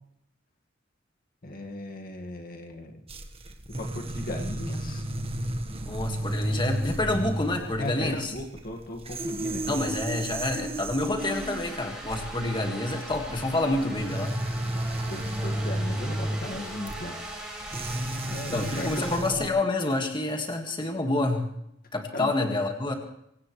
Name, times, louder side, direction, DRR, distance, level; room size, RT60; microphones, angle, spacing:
voice 1, 1.4-3.0 3.8-5.0 7.8-9.8 15.1-17.2 18.3-19.2 22.1-22.3, left 1 dB, 50° left, 3 dB, 2.0 m, -37 dB
sound 1, 3.1-19.5, right 1 dB, 30° right, 1.5 m, -33 dB
voice 2, 5.9-8.3 9.7-14.3 18.5-21.4 21.9-23.0, left 2 dB, 25° left, 3 dB, 1.9 m, -28 dB
sound 2, 11.2-19.2, right 1 dB, 5° right, 5.1 m, -39 dB
24.0 x 17.5 x 3.3 m, 0.76 s
head